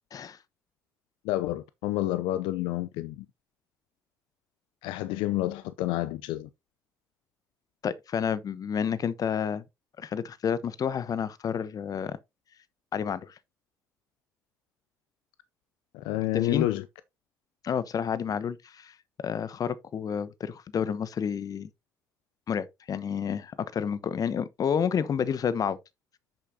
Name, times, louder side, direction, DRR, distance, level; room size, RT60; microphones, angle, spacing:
voice 1, 1.2-3.3 4.8-6.5 15.9-16.8, left 16 dB, 75° left, 0.5 m, -29 dB
voice 2, 7.8-9.6 10.0-12.2 12.9-13.3 16.3-16.7 17.6-21.7 22.5-25.8, left 7 dB, 45° left, 0.9 m, -30 dB
10.0 x 6.8 x 2.8 m
hypercardioid pair, 60°, 8 cm